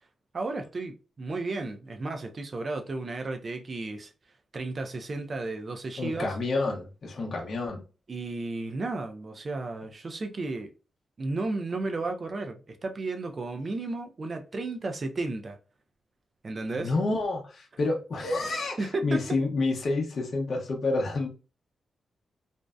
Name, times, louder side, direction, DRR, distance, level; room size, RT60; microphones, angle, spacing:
voice 1, 0.3-4.1 4.5-6.4 8.1-10.7 11.2-15.6 16.4-16.9 18.8-19.4, right 3 dB, 40° right, 0.5 m, -33 dB
voice 2, 6.0-7.8 16.8-21.3, left 3 dB, 55° left, 0.7 m, -29 dB
2.6 x 2.1 x 2.3 m
cardioid pair, 95°, 0 cm